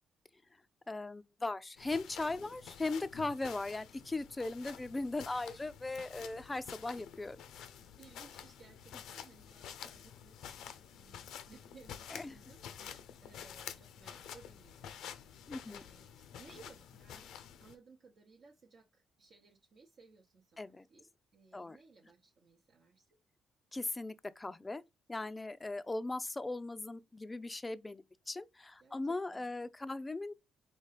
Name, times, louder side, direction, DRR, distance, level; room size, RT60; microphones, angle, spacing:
voice 1, 0.9-7.4 12.1-12.4 15.5-15.8 20.6-20.9 21.5-21.8 23.7-24.8 25.1-30.3, left 2 dB, 20° left, 0.4 m, -38 dB
sound 1, 1.8-17.7, left 8 dB, 85° left, 0.5 m, -50 dB
voice 2, 8.0-17.3 17.6-23.1 28.8-29.5, right 4 dB, 55° right, 0.9 m, -61 dB
4.4 x 2.7 x 3.3 m
cardioid pair, 90°, 0 cm